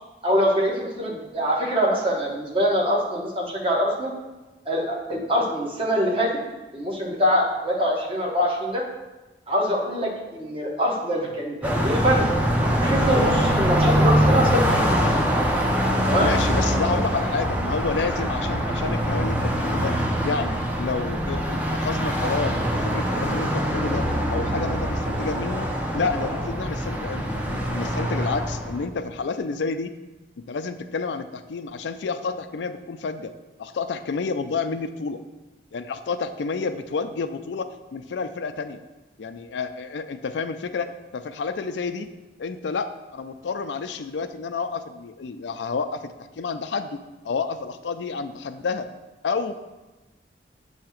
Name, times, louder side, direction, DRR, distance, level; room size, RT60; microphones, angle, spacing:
voice 1, 0.2-4.1 4.6-6.3 6.7-8.8 9.5-12.3 12.8-15.0 16.1-16.3, equal, 30° right, -2 dB, 1.2 m, -24 dB
Car passing by, 11.6-28.8, equal, 10° right, 0.6 m, -23 dB
voice 2, 16.2-19.9 20.2-29.9 30.5-33.3 33.6-35.2 35.7-38.8 39.2-42.1 42.4-47.0 47.2-48.9 49.2-49.7, left 4 dB, 85° left, 10 dB, 0.4 m, -30 dB
7.7 x 2.8 x 5.7 m, 1.1 s
head